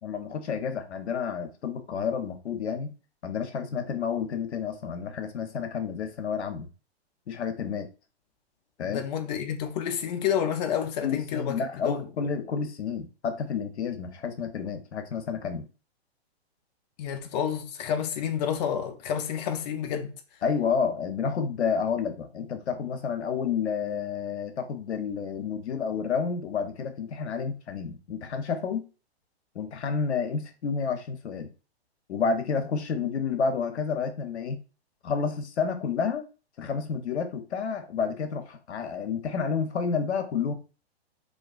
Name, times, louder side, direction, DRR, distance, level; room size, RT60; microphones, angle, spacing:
voice 1, 0.0-2.9 3.2-6.7 7.3-7.9 8.8-9.0 11.0-15.7 20.4-28.9 29.5-31.5 32.1-34.6 35.0-36.2 36.6-40.5, left 6 dB, 90° left, 0.6 m, -30 dB
voice 2, 8.8-12.1 17.0-20.1, left 8 dB, 40° left, 0.4 m, -29 dB
2.4 x 2.2 x 2.3 m
hypercardioid pair, 130°, 33 cm